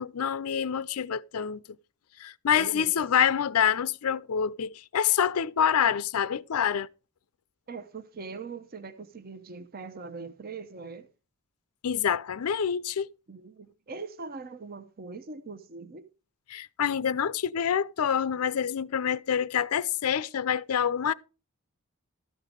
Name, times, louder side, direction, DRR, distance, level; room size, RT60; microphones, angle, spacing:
voice 1, 0.0-1.6 2.2-6.9 11.8-13.1 16.5-21.1, left 8 dB, 85° left, 0.5 m, -26 dB
voice 2, 2.5-3.1 7.7-11.1 13.3-16.1, right 4 dB, 45° right, 0.7 m, -41 dB
13.0 x 6.5 x 5.2 m
head